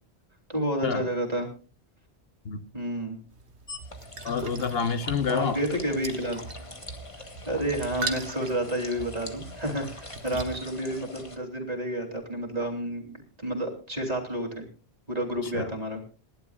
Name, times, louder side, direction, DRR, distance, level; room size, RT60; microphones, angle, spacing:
voice 1, 0.5-1.5 2.7-3.2 5.3-6.4 7.4-14.7 15.1-16.0, right 1 dB, 35° right, 2 dB, 3.3 m, -30 dB
sound 1, 3.3-10.6, right 3 dB, 80° right, 1.7 m, -40 dB
sound 2, 3.7-11.4, left 2 dB, 30° left, 1.6 m, -43 dB
voice 2, 4.2-5.6 15.4-15.7, left 6 dB, 65° left, 10 dB, 1.2 m, -28 dB
28.0 x 11.5 x 2.4 m, 0.36 s
omnidirectional pair, 1.1 m